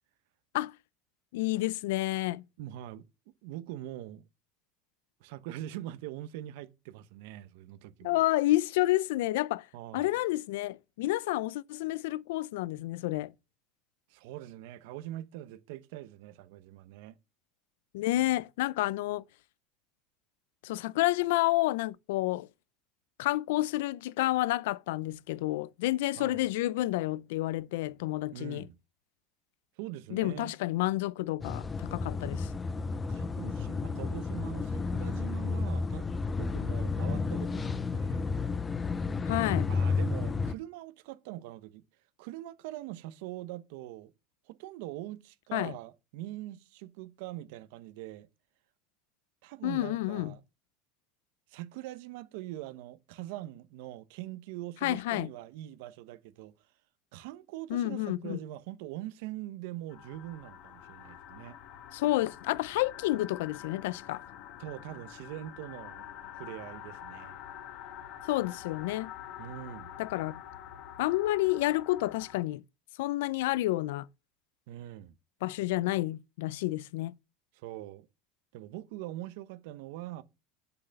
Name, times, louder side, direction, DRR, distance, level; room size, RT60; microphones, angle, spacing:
voice 1, 1.3-2.4 8.0-9.7 9.9-13.3 17.9-19.2 20.6-22.5 23.2-28.7 30.1-32.5 39.2-39.7 45.5-45.7 49.6-50.3 54.8-55.3 57.7-58.4 61.9-64.2 68.3-69.1 70.0-70.4 71.0-72.6 73.0-74.1 75.4-77.1, left 17 dB, 85° left, 0.4 m, -30 dB
voice 2, 2.6-3.1 3.4-4.3 5.2-8.2 9.7-10.1 14.1-17.1 26.2-26.4 28.3-28.8 29.8-30.5 33.1-36.1 36.4-38.3 39.7-41.8 42.2-44.1 44.5-48.3 49.4-50.4 51.5-56.5 57.1-61.6 64.6-66.1 66.3-67.4 69.4-69.9 74.7-75.2 77.5-78.1 78.5-80.2, right 14 dB, 70° right, 0.8 m, -43 dB
sound 1, 31.4-40.5, left 4 dB, 15° left, 0.4 m, -32 dB
sound 2, 59.9-72.4, left 10 dB, 50° left, 1.5 m, -47 dB
8.0 x 6.9 x 5.2 m
cardioid pair, 160°, 0 cm